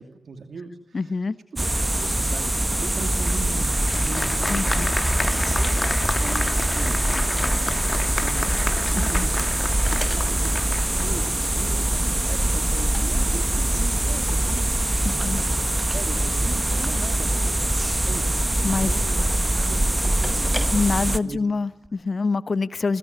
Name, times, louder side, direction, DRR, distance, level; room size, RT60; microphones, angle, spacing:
voice 1, 0.0-1.2 1.5-1.7 2.0-8.4 8.8-17.7 18.0-18.4 18.6-21.4, right 4 dB, 80° right, 7 dB, 2.7 m, -39 dB
voice 2, 0.9-1.4 4.5-4.9 9.0-9.3 15.0-15.4 18.6-19.0 20.7-23.0, left 4 dB, 60° left, 15 dB, 1.1 m, -25 dB
sound 1, 1.6-21.2, right 1 dB, 20° right, 1.6 m, -23 dB
Applause, 3.2-11.2, left 3 dB, 40° left, 2.0 m, -31 dB
sound 2, 9.5-21.9, left 1 dB, 10° left, 6.1 m, -42 dB
24.0 x 23.0 x 9.8 m, 0.77 s
cardioid pair, 45°, 0 cm